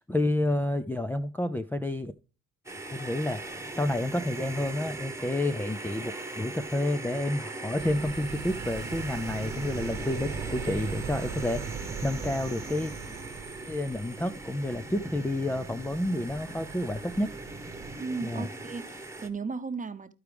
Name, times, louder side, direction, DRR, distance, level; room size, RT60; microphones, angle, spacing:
voice 1, 0.0-2.1 2.9-12.9 13.7-17.3 18.2-18.5, left 1 dB, 5° left, 0.5 m, -30 dB
sound 1, 2.7-19.3, right 2 dB, 10° right, 1.2 m, -40 dB
sound 2, 7.8-18.0, right 6 dB, 60° right, 1.0 m, -40 dB
voice 2, 18.0-20.1, right 4 dB, 25° right, 0.9 m, -35 dB
13.0 x 4.7 x 3.4 m
cardioid pair, 90°, 30 cm